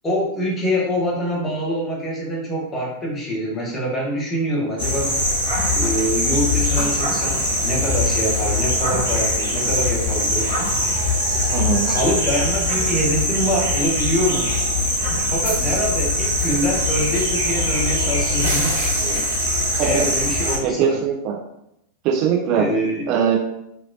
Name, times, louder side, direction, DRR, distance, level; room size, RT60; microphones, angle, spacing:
voice 1, 0.0-5.2 5.7-10.5 11.9-14.5 15.3-19.2 19.8-21.0 22.5-23.1, equal, 20° left, -3 dB, 0.9 m, -25 dB
sound 1, 4.8-20.6, left 1 dB, 80° right, 1.1 m, -21 dB
voice 2, 11.5-11.9 19.8-20.0 20.6-21.4 22.0-22.6 23.1-23.4, right 7 dB, 40° right, -1 dB, 0.5 m, -20 dB
3.0 x 2.7 x 2.6 m, 0.79 s
figure-of-eight pair, 90°, 0 cm